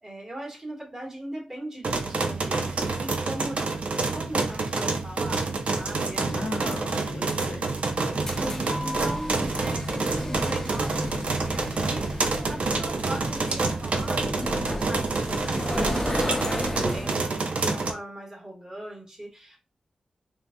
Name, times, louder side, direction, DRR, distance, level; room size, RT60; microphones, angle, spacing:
voice 1, 0.0-3.7 4.1-6.3 6.6-7.2 8.4-19.6, right 1 dB, 30° right, 1.8 m, -40 dB
sound 1, 1.8-17.9, right 3 dB, 70° right, 0.5 m, -28 dB
voice 2, 6.2-7.7 8.4-8.8, left 2 dB, 75° left, 0.9 m, -37 dB
sound 2, 8.0-17.3, left 1 dB, 20° left, 0.7 m, -33 dB
3.6 x 2.7 x 2.6 m
cardioid pair, 55°, 2 cm